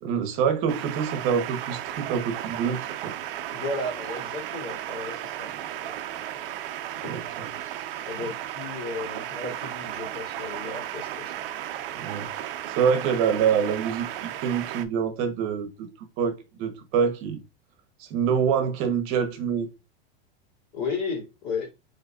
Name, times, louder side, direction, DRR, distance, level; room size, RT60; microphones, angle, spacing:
voice 1, 0.0-3.1 7.0-7.5 11.9-15.9 16.2-17.4 18.0-19.7, right 7 dB, 45° right, 1.0 m, -26 dB
sound 1, 0.7-14.8, right 12 dB, 65° right, 0.7 m, -35 dB
voice 2, 3.5-5.5 5.8-6.0 7.0-7.1 7.5-11.3 20.7-21.7, left 3 dB, 50° left, 2.4 m, -34 dB
5.0 x 4.3 x 2.4 m
supercardioid pair, 145°, 30 cm